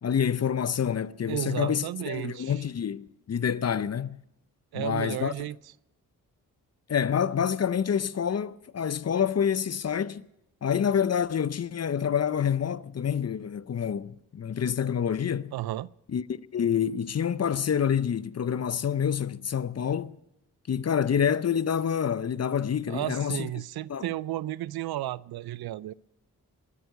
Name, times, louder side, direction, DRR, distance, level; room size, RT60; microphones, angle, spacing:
voice 1, 0.0-4.2 4.7-5.5 6.9-10.3 10.6-15.5 16.1-16.2 16.5-20.2 20.7-23.5 23.9-24.1, left 8 dB, 45° left, 0.6 m, -27 dB
voice 2, 1.3-2.6 4.7-5.6 15.5-15.9 22.9-25.9, right 14 dB, 75° right, 0.5 m, -33 dB
21.0 x 9.2 x 6.7 m
supercardioid pair, 40°, 37 cm